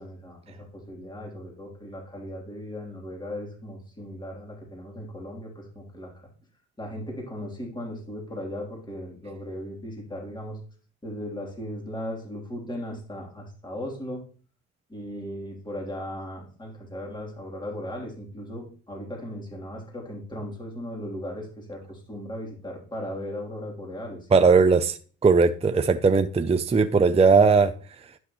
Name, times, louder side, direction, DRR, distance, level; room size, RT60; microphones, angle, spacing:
voice 1, 0.0-6.1 6.8-10.6 11.0-14.2 14.9-24.4, equal, 15° left, 3.3 m, -37 dB
voice 2, 24.3-25.0 25.2-27.7, right 4 dB, 20° right, 0.6 m, -18 dB
11.5 x 6.3 x 3.1 m
cardioid pair, 90°, 30 cm